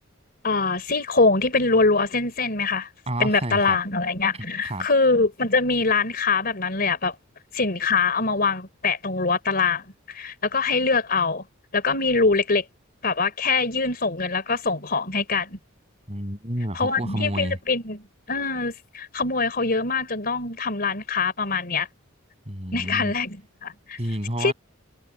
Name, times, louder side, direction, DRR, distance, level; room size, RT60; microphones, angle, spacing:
voice 1, 0.4-2.9 3.2-7.2 7.5-11.4 11.7-12.6 13.0-15.6 16.7-21.9 22.7-24.0 24.4-24.5, left 4 dB, 45° left, 4.1 m, -23 dB
voice 2, 3.1-3.8 4.6-4.9 16.1-17.6 22.5-23.1 24.0-24.5, right 1 dB, 30° right, 7.0 m, -29 dB
head